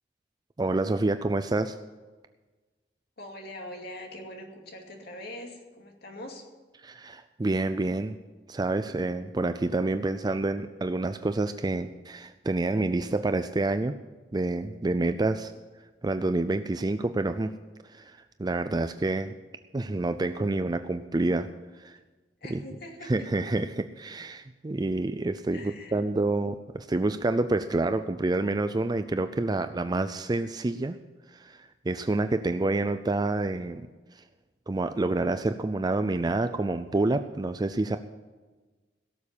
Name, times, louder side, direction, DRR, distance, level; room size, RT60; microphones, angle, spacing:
voice 1, 0.6-1.8 6.8-8.2 8.5-13.9 14.3-15.5 16.0-17.6 17.8-19.3 19.7-21.5 21.7-22.0 22.5-22.6 23.1-31.0 31.3-33.8 34.1-34.3 34.7-38.0, right 2 dB, 25° right, 10 dB, 0.4 m, -28 dB
voice 2, 3.2-6.5 22.4-23.3 25.5-26.0, left 1 dB, 60° left, 2 dB, 2.5 m, -42 dB
17.0 x 7.2 x 8.5 m, 1.3 s
head